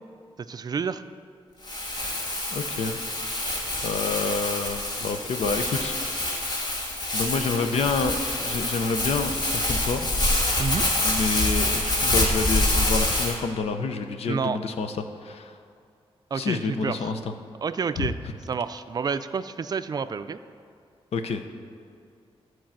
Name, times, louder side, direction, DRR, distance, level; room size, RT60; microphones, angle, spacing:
voice 1, 0.4-1.0 10.6-10.8 14.3-14.6 16.3-17.1 17.6-18.2 18.5-20.4, right 5 dB, 40° right, 12 dB, 0.3 m, -29 dB
Crumpling crinkling, 1.6-13.3, left 1 dB, 45° left, 1.5 m, -26 dB
voice 2, 2.5-3.0 3.8-6.4 7.1-10.1 11.0-15.6 16.3-17.2 18.0-18.1 21.1-21.4, left 4 dB, 90° left, 7 dB, 0.7 m, -28 dB
13.0 x 4.7 x 7.4 m, 2.4 s
wide cardioid pair, 160°, 10 cm